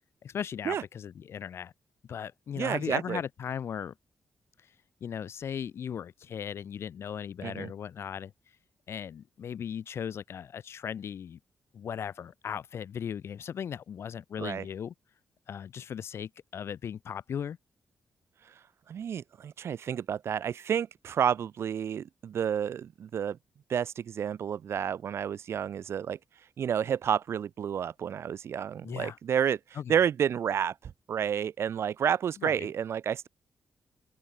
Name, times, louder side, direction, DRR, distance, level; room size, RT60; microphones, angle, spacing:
voice 1, 0.2-1.7 2.1-3.9 5.0-8.3 8.9-11.4 11.7-14.9 15.5-17.6 28.8-29.2 29.8-30.0 32.4-32.7, left 8 dB, 65° left, 1.8 m, -37 dB
voice 2, 2.6-3.2 7.4-7.7 14.4-14.6 18.9-23.4 23.7-26.2 26.6-29.6 29.9-33.3, right 8 dB, 65° right, 1.7 m, -30 dB
open air
cardioid pair, 115°, 5 cm